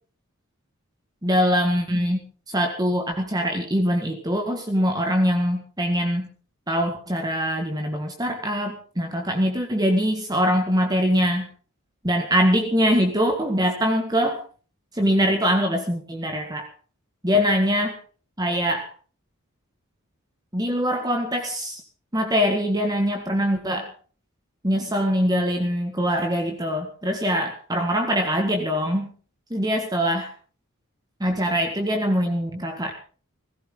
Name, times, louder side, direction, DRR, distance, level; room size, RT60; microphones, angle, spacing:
voice 1, 1.2-2.2 2.5-6.3 6.7-11.5 12.0-14.4 14.9-16.7 17.2-17.9 18.4-18.9 20.5-21.8 22.1-23.9 24.6-29.1 29.5-30.3 31.2-32.9, equal, 20° right, 3 dB, 1.8 m, -23 dB
18.5 x 16.0 x 3.9 m, 0.39 s
head